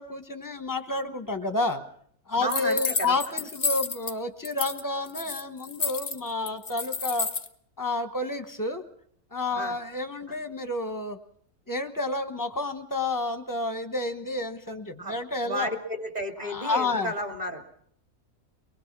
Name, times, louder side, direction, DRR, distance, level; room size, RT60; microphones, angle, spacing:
voice 1, 0.0-1.8 2.3-7.3 7.8-8.8 9.3-11.2 11.7-15.7 16.4-17.1, left 2 dB, 15° left, 8 dB, 1.2 m, -30 dB
voice 2, 2.4-3.1 9.6-9.7 15.0-15.2 15.5-17.6, right 1 dB, 25° right, 4 dB, 2.7 m, -32 dB
sound 1, 2.5-4.1 4.4-4.8 5.1-7.5, left 5 dB, 35° left, 0.9 m, -30 dB
24.0 x 20.5 x 6.1 m, 0.64 s
omnidirectional pair, 1.6 m